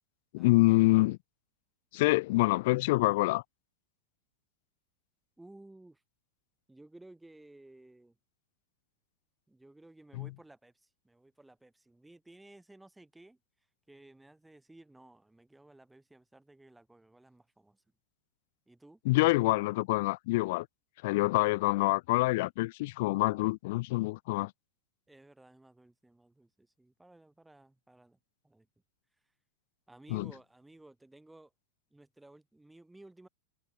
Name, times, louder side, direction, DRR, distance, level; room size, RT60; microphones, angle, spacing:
voice 1, 0.3-1.2 1.9-3.4 10.1-10.3 19.1-20.7 21.0-24.5 30.1-30.3, left 21 dB, 60° left, 0.3 m, -26 dB
voice 2, 5.4-6.0 6.7-8.2 9.5-13.4 13.9-17.8 18.7-19.0 25.1-28.2 28.4-28.7 29.9-31.5 31.9-33.3, right 2 dB, 5° right, 7.0 m, -56 dB
hypercardioid pair, 105°, 0 cm